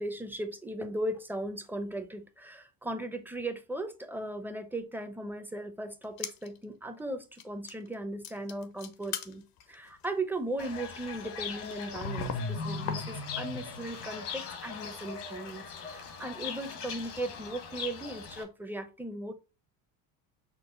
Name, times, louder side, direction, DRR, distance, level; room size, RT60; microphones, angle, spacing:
voice 1, 0.0-19.3, right 1 dB, 5° right, 0.7 m, -37 dB
sound 1, 6.0-6.6 7.0-7.1 7.4-7.9 8.2-13.5 13.8-14.5 14.8-14.9 15.5-17.7 18.1-18.2, left 10 dB, 55° left, 0.8 m, -43 dB
Fowl / Bird, 10.6-18.4, left 4 dB, 80° left, 1.5 m, -39 dB
6.2 x 2.1 x 3.8 m
hypercardioid pair, 80°, 44 cm